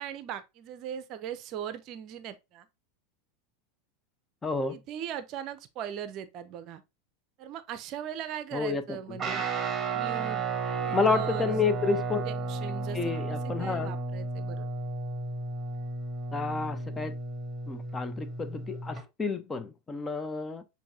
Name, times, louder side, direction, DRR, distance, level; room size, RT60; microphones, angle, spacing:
voice 1, 0.0-2.6 4.7-6.8 7.4-9.4 9.9-10.4 10.8-11.6 12.3-13.1 13.6-14.7, right 9 dB, 45° right, 0.5 m, -39 dB
voice 2, 4.4-4.8 8.5-9.2 10.7-12.2 12.9-14.0 16.3-17.2 17.7-20.6, left 4 dB, 20° left, 0.6 m, -30 dB
Guitar, 9.2-19.0, right 3 dB, 20° right, 1.1 m, -33 dB
6.9 x 2.7 x 2.7 m
figure-of-eight pair, 85°, 0 cm